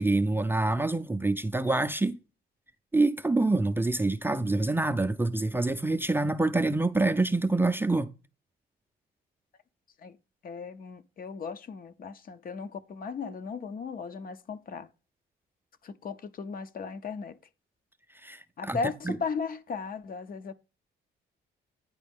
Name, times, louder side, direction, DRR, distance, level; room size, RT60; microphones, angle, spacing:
voice 1, 0.0-2.2 2.9-8.1 18.2-18.8 19.0-19.2, right 2 dB, 10° right, 0.4 m, -26 dB
voice 2, 10.4-14.9 15.8-17.4 18.6-20.5, left 5 dB, 45° left, 0.6 m, -36 dB
9.4 x 4.2 x 3.5 m
cardioid pair, 90°, 20 cm